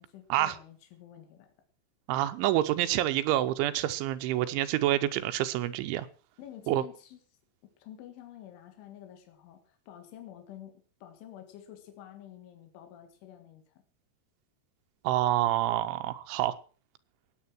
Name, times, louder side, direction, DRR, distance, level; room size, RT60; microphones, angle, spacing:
voice 1, 0.0-1.5 6.4-7.2 7.8-10.7 11.0-13.8, left 11 dB, 80° left, 5 dB, 4.3 m, -49 dB
voice 2, 2.1-6.1 6.7-6.8 15.0-16.6, right 14 dB, 80° right, 10 dB, 3.2 m, -27 dB
16.0 x 9.1 x 6.0 m, 0.39 s
omnidirectional pair, 5.5 m